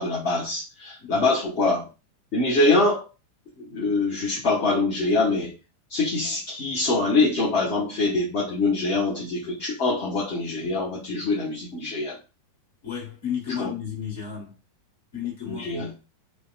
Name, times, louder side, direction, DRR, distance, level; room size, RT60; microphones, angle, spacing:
voice 1, 0.0-1.9 2.3-3.1 3.6-5.5 5.9-12.2 13.6-13.7 15.5-15.9, left 2 dB, 40° left, 0.8 m, -24 dB
voice 2, 12.8-14.5 15.1-15.9, left 8 dB, 60° left, 1.5 m, -33 dB
2.8 x 2.1 x 2.4 m
figure-of-eight pair, 90°, 0 cm